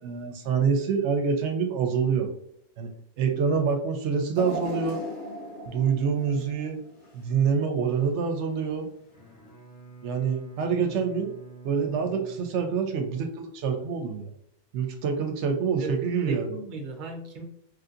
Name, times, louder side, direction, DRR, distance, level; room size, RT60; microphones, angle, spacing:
voice 1, 0.0-2.3 2.8-2.9 3.2-5.0 5.7-6.8 7.1-8.9 10.0-11.3 11.6-14.3 14.7-16.6, right 6 dB, 80° right, 4 dB, 0.9 m, -26 dB
sound 1, 4.4-7.5 7.9-8.1 9.1-9.2, right 1 dB, 80° left, 1.5 m, -37 dB
Bowed string instrument, 9.0-13.4, right 4 dB, 35° left, 1.0 m, -48 dB
voice 2, 15.8-17.4, right 3 dB, 50° right, 2 dB, 0.7 m, -36 dB
3.1 x 2.7 x 2.5 m, 0.74 s
omnidirectional pair, 1.2 m